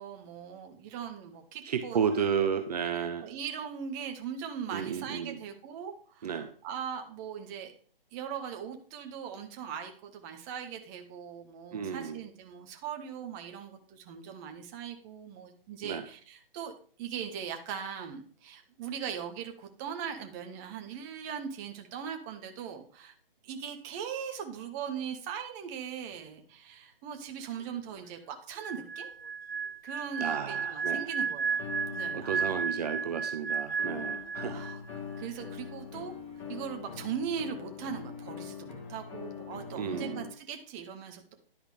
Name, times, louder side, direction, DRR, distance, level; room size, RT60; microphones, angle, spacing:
voice 1, 0.0-2.5 2.8-7.7 8.1-16.7 17.0-23.1 23.4-29.1 29.8-32.6 34.5-34.8 35.2-36.1 36.5-41.3, right 7 dB, 20° right, 4 dB, 0.9 m, -40 dB
voice 2, 1.6-3.3 4.7-5.4 6.2-6.5 11.7-12.2 15.8-16.1 30.2-31.1 32.1-34.6 39.7-40.3, right 7 dB, 45° right, 8 dB, 0.8 m, -32 dB
sound 1, 26.1-26.2 27.3-28.4 28.7-29.7 31.6-33.1 33.8-40.3, left 7 dB, 30° left, 1.3 m, -43 dB
sound 2, 28.6-34.9 35.2-35.5, right 6 dB, 85° right, 0.6 m, -34 dB
10.5 x 5.0 x 4.9 m, 0.44 s
figure-of-eight pair, 140°, 29 cm